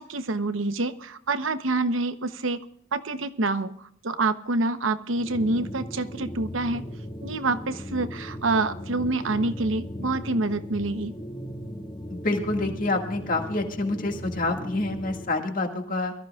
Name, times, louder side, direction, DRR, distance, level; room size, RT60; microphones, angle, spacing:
voice 1, 0.0-2.6 2.9-6.8 7.2-11.1, right 2 dB, 85° right, 11 dB, 0.9 m, -27 dB
sound 1, 5.1-15.3, equal, 25° left, 1.7 m, -37 dB
voice 2, 12.1-16.1, left 2 dB, 45° left, 3 dB, 2.0 m, -27 dB
23.5 x 14.0 x 2.4 m, 0.68 s
head